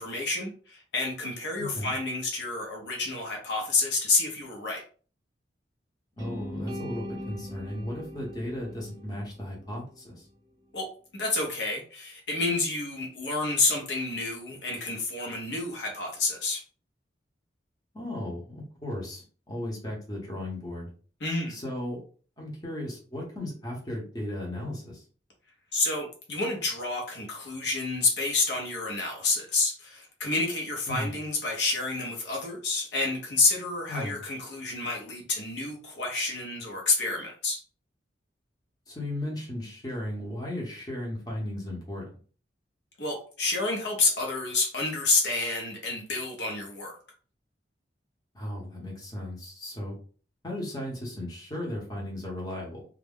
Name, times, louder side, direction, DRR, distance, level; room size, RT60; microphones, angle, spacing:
voice 1, 0.0-4.8 10.7-10.9 11.1-16.6 21.2-21.6 25.7-37.6 43.0-46.9, left 3 dB, 75° left, 1 dB, 0.8 m, -29 dB
voice 2, 1.6-1.9 6.2-10.3 17.9-20.9 21.5-22.0 22.4-25.0 30.9-31.1 33.9-34.1 38.9-42.2 48.3-50.0 50.4-52.8, left 1 dB, 20° left, -3 dB, 0.9 m, -35 dB
sound 1, 6.2-10.3, left 1 dB, 20° right, 0.9 m, -41 dB
2.4 x 2.1 x 3.5 m, 0.40 s
head